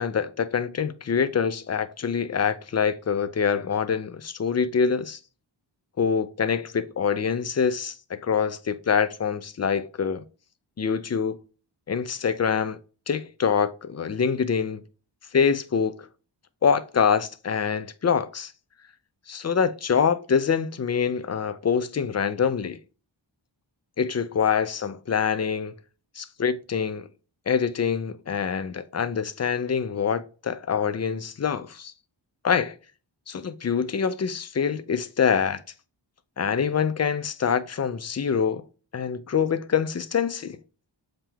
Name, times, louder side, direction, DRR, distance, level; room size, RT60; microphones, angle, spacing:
voice 1, 0.0-5.2 6.0-10.2 10.8-11.4 11.9-12.8 13.1-14.8 15.3-16.1 16.6-18.5 19.3-22.8 24.0-25.7 26.2-27.1 27.5-31.9 32.4-32.7 33.3-35.6 36.4-38.6 38.9-40.6, left 6 dB, 35° left, 0.5 m, -25 dB
7.2 x 2.9 x 2.2 m
wide cardioid pair, 80°, 46 cm